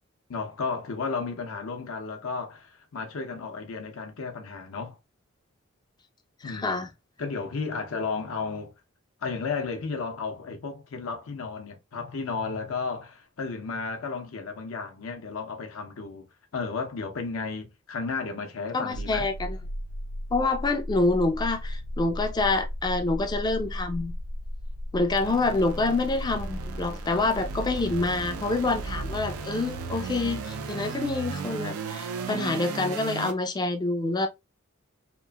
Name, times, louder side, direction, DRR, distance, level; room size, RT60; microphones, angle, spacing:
voice 1, 0.3-5.0 6.4-6.9 7.2-8.7 9.2-16.3 16.5-19.3, left 4 dB, 75° left, 0.6 m, -33 dB
voice 2, 6.4-6.9 18.7-19.6 20.3-24.1 24.9-34.3, left 3 dB, 20° left, 0.4 m, -27 dB
sound 1, 18.9-33.3, right 2 dB, 85° right, 0.4 m, -35 dB
2.9 x 2.4 x 2.2 m
head